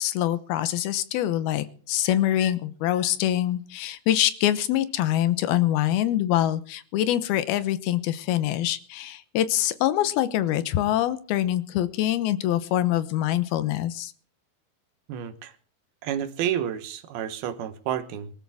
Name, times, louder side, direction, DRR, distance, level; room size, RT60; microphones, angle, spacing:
voice 1, 0.0-14.1, left 12 dB, 85° left, 2.9 m, -24 dB
voice 2, 15.1-15.5 16.0-18.3, right 10 dB, 80° right, 3.1 m, -30 dB
23.0 x 13.5 x 3.6 m
omnidirectional pair, 4.3 m